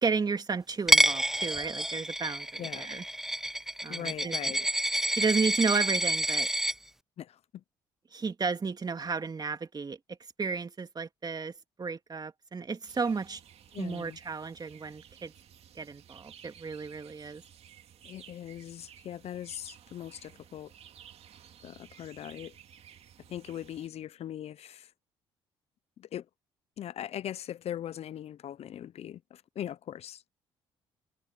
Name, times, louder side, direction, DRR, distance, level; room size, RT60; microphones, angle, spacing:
voice 1, 0.0-3.0 3.8-4.4 5.2-6.5 8.1-11.5 11.8-13.4 13.8-15.3 15.7-17.4, right 5 dB, 35° right, 2.5 m, -33 dB
Coin (dropping), 0.9-6.7, right 1 dB, 5° right, 0.4 m, -28 dB
voice 2, 3.9-4.7 7.2-7.6 13.7-14.2 18.0-20.7 21.6-22.6 23.3-24.9 26.0-26.3 26.8-30.3, left 11 dB, 60° left, 1.0 m, -40 dB
sound 1, 12.9-23.9, right 9 dB, 55° right, 2.5 m, -55 dB
hypercardioid pair, 55°, 12 cm